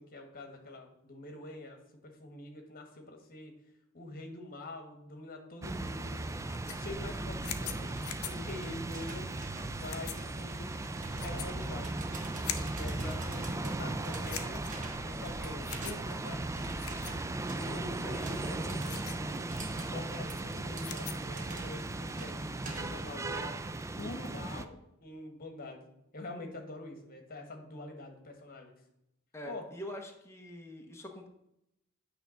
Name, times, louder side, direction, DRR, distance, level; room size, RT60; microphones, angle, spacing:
voice 1, 0.0-1.8 2.0-3.5 3.9-8.0 8.3-9.3 9.7-10.8 11.2-12.0 12.4-14.6 15.0-17.0 17.5-19.3 19.7-23.5 24.0-28.7 29.4-29.7, left 2 dB, 45° left, 4 dB, 1.4 m, -45 dB
sound 1, 5.6-24.7, right 2 dB, 15° right, 0.3 m, -37 dB
sound 2, 6.3-21.4, left 9 dB, 70° left, 0.7 m, -46 dB
sound 3, 7.7-23.2, right 2 dB, 35° right, 1.2 m, -48 dB
voice 2, 12.9-13.5 29.3-31.3, left 1 dB, 10° left, 2 dB, 0.8 m, -45 dB
8.9 x 3.4 x 6.3 m, 0.82 s
head